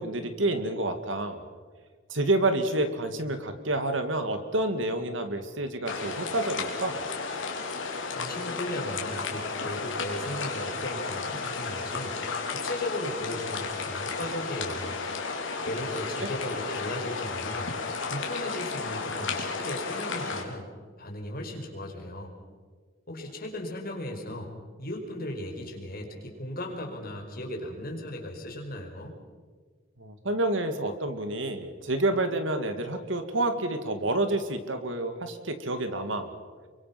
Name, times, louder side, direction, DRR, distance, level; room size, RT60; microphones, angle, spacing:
voice 1, 0.0-1.4 2.1-7.0 30.0-36.3, right 2 dB, 70° right, 8 dB, 2.4 m, -28 dB
sound 1, 5.9-20.4, left 4 dB, 70° left, 3.6 m, -33 dB
voice 2, 8.2-12.2 12.5-15.0 15.6-17.7 18.1-20.7 21.0-22.3 23.1-24.5 24.8-29.1, left 1 dB, 50° left, 1 dB, 5.2 m, -36 dB
28.5 x 24.0 x 6.1 m, 1.5 s
head